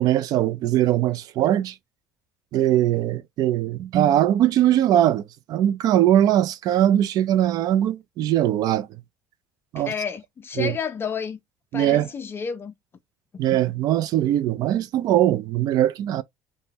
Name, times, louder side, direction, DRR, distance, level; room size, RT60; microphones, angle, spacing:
voice 1, 0.0-1.7 2.5-5.2 5.5-8.9 9.7-9.9 10.6-10.7 11.7-12.1 13.4-16.2, right 12 dB, 60° right, 0.4 m, -21 dB
voice 2, 9.8-11.4 11.7-12.7, left 6 dB, 30° left, 0.4 m, -30 dB
2.7 x 2.1 x 3.5 m
supercardioid pair, 105°, 7 cm